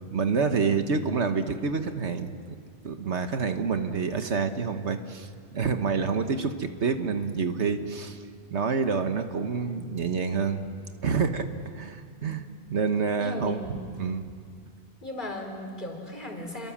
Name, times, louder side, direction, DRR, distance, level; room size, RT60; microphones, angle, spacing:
voice 1, 0.1-2.6 2.8-8.2 8.5-10.7 11.0-12.4 12.7-13.6 14.0-14.3, right 5 dB, 75° right, 8 dB, 1.5 m, -28 dB
voice 2, 13.2-13.8 15.0-16.7, left 1 dB, 45° left, 3 dB, 4.0 m, -37 dB
29.5 x 23.0 x 7.4 m, 2.1 s
omnidirectional pair, 1.2 m